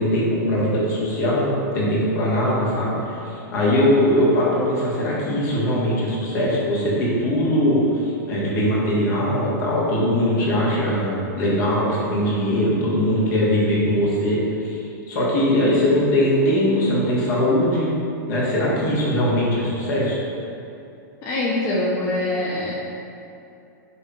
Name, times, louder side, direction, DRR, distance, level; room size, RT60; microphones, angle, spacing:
voice 1, 0.0-8.0 8.3-14.8 15.1-17.9 18.3-20.2, equal, 60° left, -6 dB, 1.1 m, -21 dB
voice 2, 21.2-22.7, left 1 dB, 25° left, -6 dB, 0.4 m, -23 dB
4.9 x 2.7 x 2.2 m, 2.7 s
supercardioid pair, 155°, 10 cm